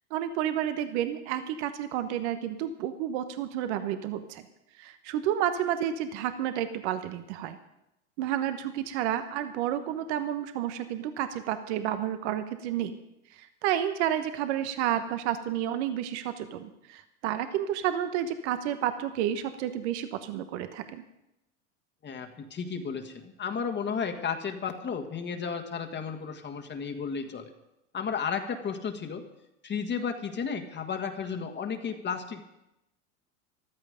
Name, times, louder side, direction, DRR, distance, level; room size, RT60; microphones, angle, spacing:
voice 1, 0.1-4.4 4.8-7.6 8.2-13.0 13.3-21.0, right 10 dB, 70° right, 10 dB, 1.3 m, -30 dB
voice 2, 22.0-27.5 27.9-29.3 29.6-32.4, left 6 dB, 30° left, 4 dB, 1.6 m, -33 dB
14.5 x 12.5 x 5.2 m, 0.88 s
hypercardioid pair, 95°, 36 cm